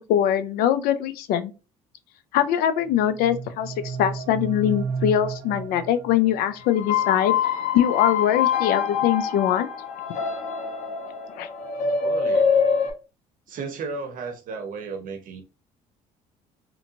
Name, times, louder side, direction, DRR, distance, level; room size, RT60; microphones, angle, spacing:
voice 1, 0.1-1.5 2.3-7.4 7.7-9.7 11.4-11.5, left 10 dB, 75° left, 0.4 m, -22 dB
sound 1, 2.8-6.8, right 5 dB, 85° right, 0.5 m, -33 dB
sound 2, 6.7-12.9, left 6 dB, 55° left, 0.9 m, -24 dB
voice 2, 12.0-12.6 13.5-15.4, right 4 dB, 60° right, 0.8 m, -34 dB
2.8 x 2.6 x 2.6 m
supercardioid pair, 80°, 16 cm